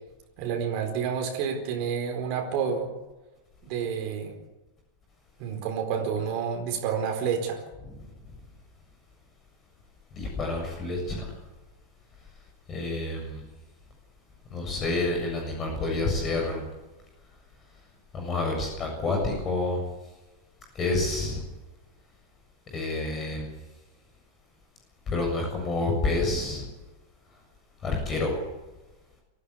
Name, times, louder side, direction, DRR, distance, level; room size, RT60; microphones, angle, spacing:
voice 1, 0.4-2.9 3.6-4.4 5.4-7.6, right 7 dB, 45° right, 4 dB, 4.4 m, -29 dB
voice 2, 10.1-11.2 12.7-13.4 14.5-16.7 18.1-19.8 20.7-21.4 22.7-23.5 25.1-26.7 27.8-28.4, left 2 dB, 25° left, 1 dB, 7.2 m, -28 dB
25.0 x 16.5 x 8.3 m, 1.1 s
figure-of-eight pair, 90°, 0 cm